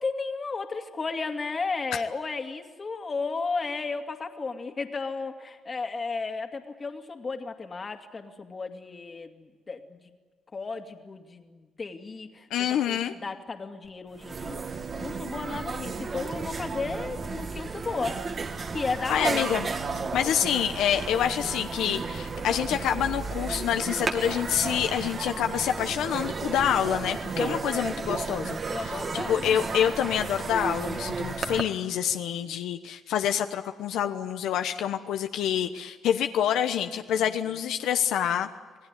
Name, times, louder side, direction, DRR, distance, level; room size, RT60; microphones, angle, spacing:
voice 1, 0.0-10.0 10.5-18.2 18.7-19.5 20.2-20.3 27.4-27.6 28.7-29.5 32.4-32.6 37.2-37.3, left 4 dB, 35° left, 6 dB, 2.4 m, -34 dB
voice 2, 12.5-13.1 19.1-19.7 20.1-28.6 28.8-28.9 29.3-38.5, left 9 dB, 85° left, 7 dB, 1.0 m, -27 dB
sound 1, 13.9-14.0 14.1-31.6, right 4 dB, 45° right, 2.2 m, -33 dB
27.5 x 18.0 x 9.9 m, 1.4 s
cardioid pair, 90°, 0 cm